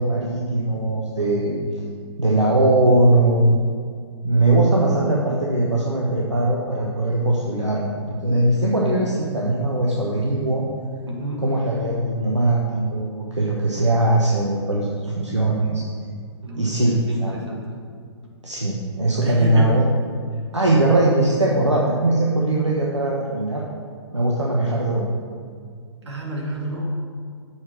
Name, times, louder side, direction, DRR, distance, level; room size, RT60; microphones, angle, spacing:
voice 1, 0.0-1.6 2.2-3.6 4.2-10.6 11.4-15.8 16.5-17.3 18.4-19.8 20.5-23.6 24.1-25.1, right 2 dB, 85° right, -3 dB, 1.1 m, -20 dB
voice 2, 11.1-11.5 16.4-17.9 19.2-19.8 26.1-26.9, equal, 70° right, -2 dB, 2.0 m, -30 dB
7.1 x 5.0 x 6.2 m, 2.2 s
figure-of-eight pair, 120°, 15 cm